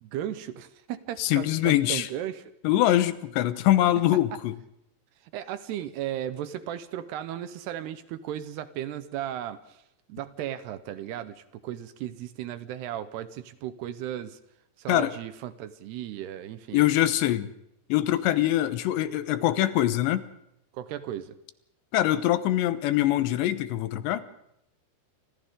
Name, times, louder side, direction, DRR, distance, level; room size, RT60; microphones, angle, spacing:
voice 1, 0.0-2.5 5.3-9.8 10.1-14.4 14.8-16.8 20.7-21.4, right 11 dB, 75° right, 2.9 m, -35 dB
voice 2, 1.2-2.1 2.6-4.6 14.9-15.1 16.7-17.5 17.9-20.3 21.9-24.3, left 13 dB, 80° left, 3.2 m, -23 dB
29.5 x 25.5 x 3.8 m
omnidirectional pair, 5.1 m